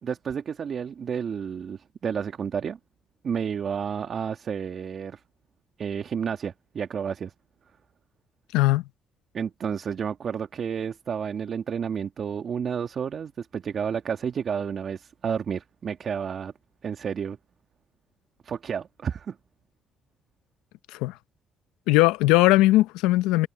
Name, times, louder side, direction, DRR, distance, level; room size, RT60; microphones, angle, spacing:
voice 1, 0.0-2.8 3.2-5.2 5.8-7.3 9.3-16.5 16.8-17.4 18.4-19.4, right 7 dB, 50° right, 1.7 m, -31 dB
voice 2, 8.5-8.8 20.9-21.1 21.9-23.5, left 18 dB, 90° left, 0.7 m, -19 dB
supercardioid pair, 75°, 0 cm